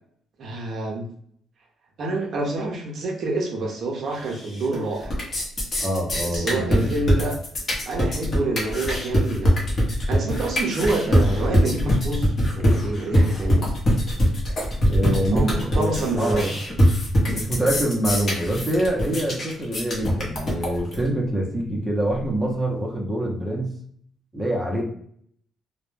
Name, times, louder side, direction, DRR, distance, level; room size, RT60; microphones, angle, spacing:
voice 1, 0.4-1.1 2.0-5.1 6.3-7.4 7.9-9.5 10.1-13.6 15.0-16.5 24.7-24.8, right 2 dB, 50° right, 1 dB, 0.5 m, -27 dB
sound 1, 4.3-4.8 5.0-21.0, equal, 35° left, 0.8 m, -22 dB
voice 2, 5.8-7.0 14.9-16.5 17.3-23.7 24.3-24.8, right 1 dB, 5° right, -3 dB, 0.6 m, -25 dB
2.2 x 2.1 x 3.1 m, 0.64 s
cardioid pair, 135°, 0 cm